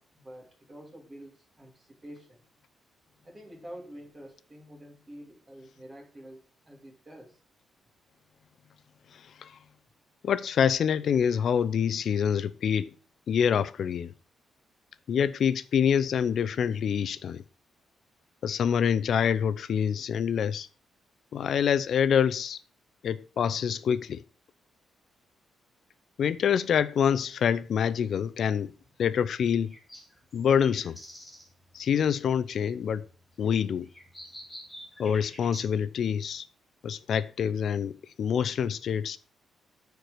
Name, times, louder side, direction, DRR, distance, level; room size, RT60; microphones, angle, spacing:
voice 1, 0.0-2.4 3.2-7.4, equal, 20° right, 2.8 m, -48 dB
voice 2, 10.2-12.9 13.3-14.1 15.1-17.4 18.4-20.7 21.3-22.6 23.0-24.2 26.2-28.7 29.0-29.7 30.3-31.0 31.7-33.0 33.4-33.9 35.0-36.4 36.8-39.2, left 8 dB, 60° left, 0.6 m, -26 dB
sound 1, 27.0-35.7, equal, 10° left, 2.8 m, -50 dB
9.3 x 4.7 x 6.6 m
cardioid pair, 135°, 0 cm